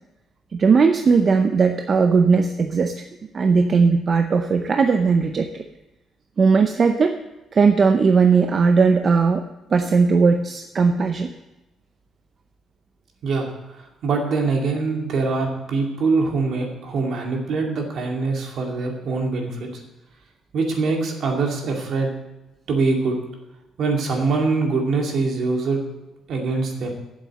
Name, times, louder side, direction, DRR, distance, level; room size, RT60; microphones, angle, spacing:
voice 1, 0.5-3.0 3.3-5.6 6.4-7.2 7.5-9.4 9.7-11.3, right 5 dB, 40° right, 6 dB, 0.6 m, -18 dB
voice 2, 13.2-19.7 20.5-22.1 22.7-23.2 23.8-25.8 26.3-26.9, right 3 dB, 65° right, 1 dB, 2.4 m, -23 dB
8.5 x 7.6 x 7.4 m, 0.99 s
cardioid pair, 120°, 0 cm